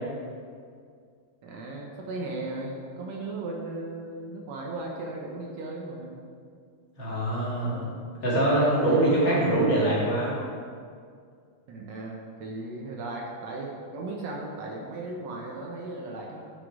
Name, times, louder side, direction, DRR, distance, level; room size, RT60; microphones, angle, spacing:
voice 1, 1.4-6.2 7.6-8.0 8.6-9.1 11.7-16.4, right 2 dB, 70° right, -1 dB, 2.1 m, -36 dB
voice 2, 7.0-7.8 8.2-10.4, right 1 dB, 40° left, -7 dB, 2.6 m, -23 dB
9.8 x 6.0 x 4.8 m, 2.2 s
omnidirectional pair, 3.3 m